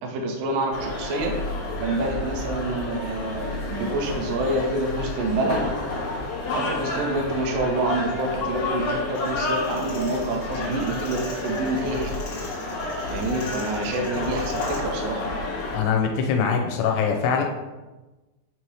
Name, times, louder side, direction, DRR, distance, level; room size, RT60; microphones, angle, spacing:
voice 1, 0.0-1.4 1.8-5.6 6.5-12.1 12.9-15.2, right 2 dB, 75° right, 1 dB, 2.1 m, -27 dB
sound 1, 0.7-15.8, left 2 dB, 65° left, 2.1 m, -30 dB
sound 2, 9.1-14.8, left 2 dB, 40° left, 1.6 m, -45 dB
voice 2, 15.7-17.4, left 6 dB, 90° left, 2 dB, 3.0 m, -22 dB
8.3 x 3.0 x 4.8 m, 1.1 s
omnidirectional pair, 4.9 m